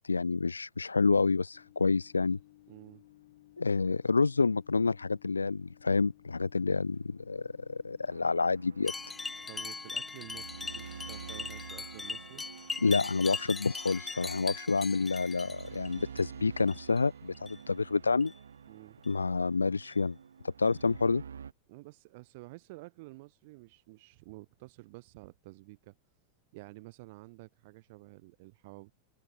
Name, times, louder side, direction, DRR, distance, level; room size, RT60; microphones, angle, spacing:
voice 1, 0.0-2.4 3.6-8.9 12.8-18.3 19.1-20.2 20.4-21.2, left 4 dB, 80° left, 0.5 m, -28 dB
Microwave oven, 1.5-15.0, left 16 dB, 55° left, 3.2 m, -61 dB
voice 2, 2.7-3.0 9.5-12.5 18.7-19.0 21.7-26.0 26.5-28.9, right 23 dB, 50° right, 7.5 m, -51 dB
sound 1, 8.1-21.5, right 7 dB, 70° right, 1.1 m, -49 dB
sound 2, 8.9-16.2 16.6-17.0 17.4-17.6 18.2-18.4 19.0-19.1 19.8-19.9 20.7-20.8, left 4 dB, 10° left, 1.3 m, -40 dB
open air
figure-of-eight pair, 90°, 0 cm